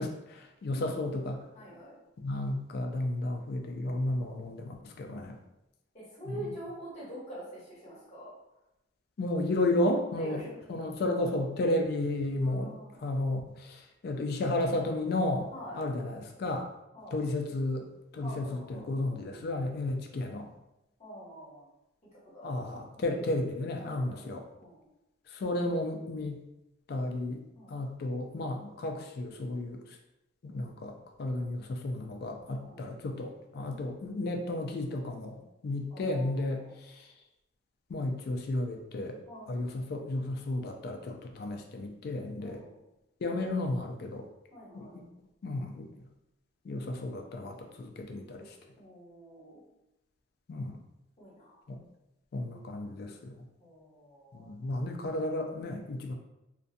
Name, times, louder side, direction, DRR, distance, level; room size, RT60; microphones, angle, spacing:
voice 1, 0.0-1.4 2.2-5.4 9.2-10.4 10.7-12.7 13.0-15.5 15.7-16.7 17.1-17.8 18.1-20.5 22.4-24.4 25.3-26.4 26.9-27.4 27.7-29.8 30.4-30.9 31.2-37.1 37.9-39.2 39.5-42.6 43.2-44.3 44.7-44.9 45.4-45.9 46.6-48.6 50.5-50.8 51.7-51.8 52.3-53.4 54.3-56.1, left 1 dB, 55° left, 3 dB, 0.3 m, -33 dB
voice 2, 1.5-1.9 4.0-4.9 5.9-8.3 10.2-10.6 12.4-13.0 15.5-15.8 16.9-17.2 18.2-19.2 21.0-21.6 22.3-22.6 22.9-23.0 23.8-24.3 24.6-24.8 27.5-27.8 32.6-32.8 33.7-34.0 35.9-36.7 39.2-39.6 42.4-42.7 44.5-44.9 48.8-49.6 51.2-51.6 53.6-54.5 54.9-55.0, equal, 35° left, -8 dB, 1.1 m, -46 dB
2.5 x 2.2 x 2.6 m, 0.92 s
head